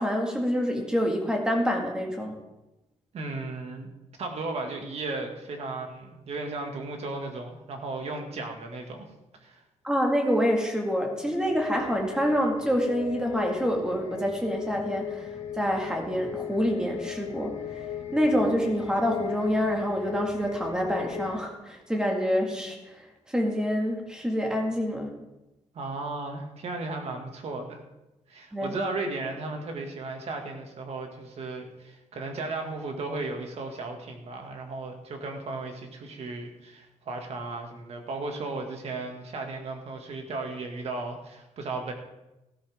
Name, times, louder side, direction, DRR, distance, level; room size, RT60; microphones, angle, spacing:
voice 1, 0.0-2.3 9.8-15.3 15.5-17.9 18.1-25.1 28.5-28.8, equal, 5° right, 1 dB, 2.0 m, -27 dB
voice 2, 3.1-3.9 4.2-9.0 9.4-9.6 25.7-27.8 28.3-41.9, right 3 dB, 55° right, 3 dB, 2.1 m, -35 dB
sound 1, 11.3-21.4, left 9 dB, 70° left, 1.4 m, -37 dB
15.0 x 13.0 x 3.6 m, 0.98 s
wide cardioid pair, 175°, 12 cm